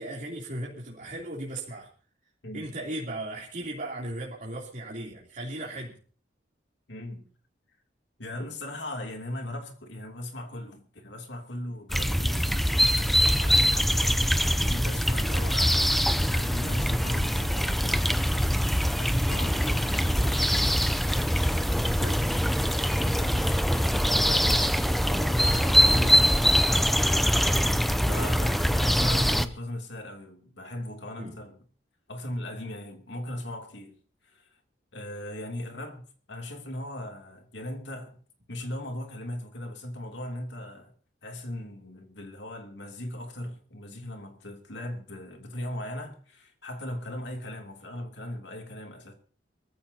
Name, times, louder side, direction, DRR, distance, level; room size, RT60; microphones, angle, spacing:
voice 1, 0.0-1.9 2.5-6.0 22.0-22.2 24.0-26.6 31.2-31.4, right 1 dB, 45° right, 3.2 m, -37 dB
voice 2, 6.9-7.3 8.2-18.7 19.0-20.8 23.0-24.0 24.3-24.6 28.0-31.6 32.1-33.9 34.2-34.4 34.9-38.2 38.5-40.9 41.2-49.1, left 1 dB, 70° left, 2.8 m, -38 dB
sound 1, 11.9-29.5, equal, ahead, 0.6 m, -23 dB
23.5 x 14.5 x 2.8 m
head